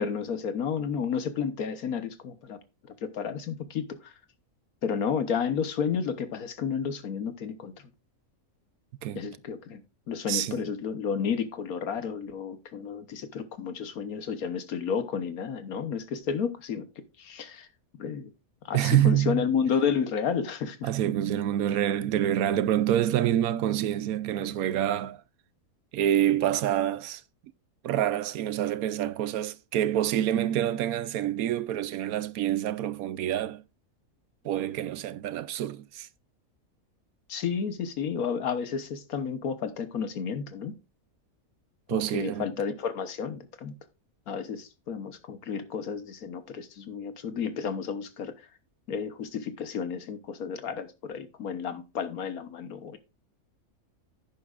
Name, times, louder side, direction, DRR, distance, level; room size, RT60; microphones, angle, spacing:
voice 1, 0.0-2.6 3.0-4.1 4.8-7.8 9.1-9.8 10.1-16.9 17.2-17.7 18.0-18.3 18.6-20.9 37.3-40.8 41.9-43.8 44.3-48.3 48.9-53.0, left 6 dB, 80° left, 1.5 m, -31 dB
voice 2, 10.3-10.6 18.7-19.4 20.8-25.2 25.9-27.2 27.8-33.6 34.4-36.1 41.9-42.5, right 11 dB, 80° right, 1.1 m, -27 dB
11.5 x 9.1 x 2.4 m
omnidirectional pair, 1.5 m